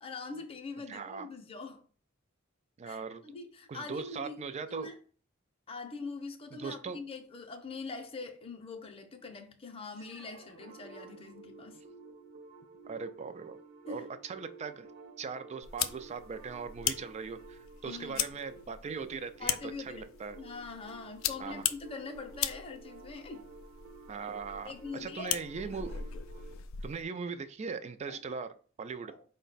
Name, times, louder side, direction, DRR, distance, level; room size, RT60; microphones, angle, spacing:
voice 1, 0.0-1.8 2.8-5.0 5.7-11.8 13.9-14.0 17.8-18.3 19.4-20.0 20.3-23.5 24.6-25.4 28.1-28.2 29.1-29.2, left 4 dB, 30° left, 0.6 m, -43 dB
voice 2, 0.9-1.3 2.8-3.2 3.7-4.9 6.5-7.0 12.9-13.6 13.9-14.9 15.2-20.4 21.4-21.6 24.1-26.0 26.8-28.5 28.8-29.1, right 5 dB, 35° right, 0.3 m, -40 dB
sound 1, 9.8-11.7, right 4 dB, 90° right, 0.8 m, -58 dB
sound 2, 10.6-26.6, right 3 dB, 60° right, 0.9 m, -53 dB
sound 3, 15.6-27.0, left 11 dB, 80° left, 0.3 m, -39 dB
4.7 x 2.2 x 3.9 m
head